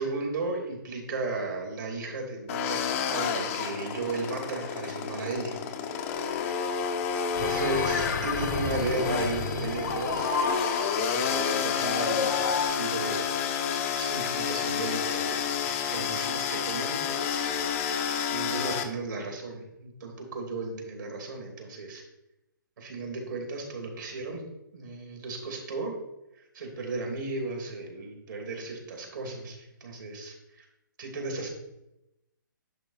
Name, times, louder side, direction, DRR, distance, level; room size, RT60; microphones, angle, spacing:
voice 1, 0.0-2.8 3.1-5.5 7.4-10.3 10.9-12.4 12.7-13.3 13.9-15.6 15.9-17.7 18.3-22.0 22.8-24.4 24.7-26.0 26.3-30.6 31.0-31.5, right 3 dB, 65° right, 1 dB, 3.1 m, -35 dB
sound 1, 2.5-18.8, left 7 dB, 40° left, 1.1 m, -30 dB
sound 2, 7.3-12.6, left 5 dB, 60° left, 1.8 m, -31 dB
10.5 x 4.0 x 5.8 m, 0.90 s
hypercardioid pair, 140°, 11 cm